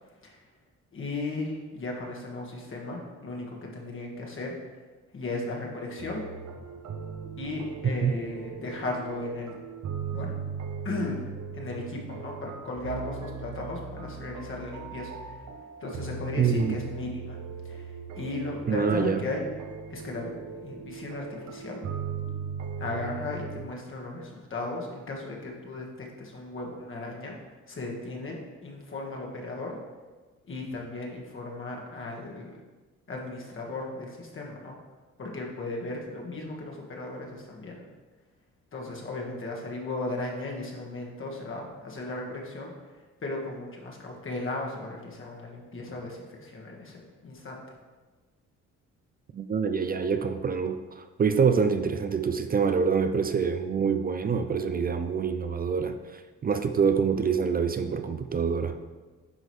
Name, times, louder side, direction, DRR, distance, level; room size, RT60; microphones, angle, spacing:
voice 1, 0.9-4.6 5.1-6.3 7.4-9.6 10.1-10.3 10.8-15.5 15.8-17.4 17.6-19.4 19.9-21.8 22.8-27.4 27.7-29.8 30.5-32.6 33.1-34.8 35.2-37.9 38.7-47.6, left 2 dB, 40° left, -1 dB, 1.5 m, -36 dB
sound 1, 6.0-23.7, right 6 dB, 65° right, 0.8 m, -38 dB
voice 2, 16.4-16.8 18.7-19.2 49.3-58.8, right 6 dB, 30° right, 9 dB, 0.4 m, -26 dB
10.0 x 3.8 x 3.2 m, 1.3 s
cardioid pair, 90°, 30 cm